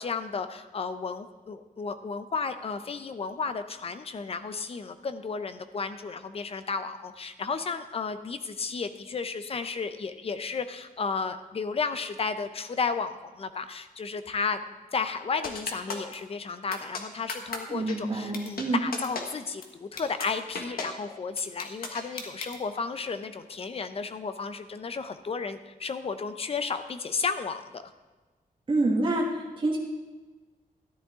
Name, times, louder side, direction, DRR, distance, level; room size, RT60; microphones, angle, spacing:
voice 1, 0.0-14.6 14.9-27.8, left 5 dB, 40° left, 10 dB, 0.6 m, -33 dB
sound 1, 15.4-16.1 16.7-17.0 17.3-17.6 17.9-18.0 18.3-18.6 18.9-19.2 19.6-19.7 20.0-20.3 20.5-20.9 21.4-22.5, left 4 dB, 80° left, 1.4 m, -34 dB
voice 2, 17.7-18.8 28.7-29.2 29.6-29.8, right 2 dB, 35° right, -3 dB, 1.7 m, -26 dB
13.5 x 10.5 x 3.7 m, 1.2 s
wide cardioid pair, 175°, 15 cm